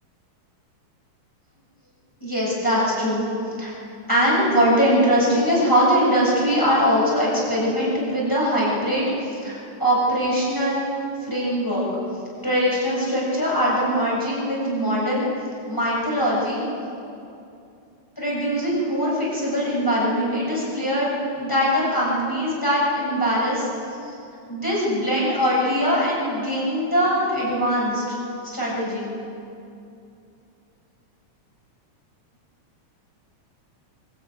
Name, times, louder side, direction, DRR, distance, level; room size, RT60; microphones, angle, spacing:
voice 1, 2.2-3.3 3.6-3.7 4.1-10.8 11.3-11.9 12.4-15.3 15.7-16.6 18.2-23.7 24.0-24.1 24.5-28.2 28.4-29.2, equal, 5° left, -6 dB, 7.2 m, -22 dB
25.0 x 13.0 x 9.6 m, 2.6 s
omnidirectional pair, 3.4 m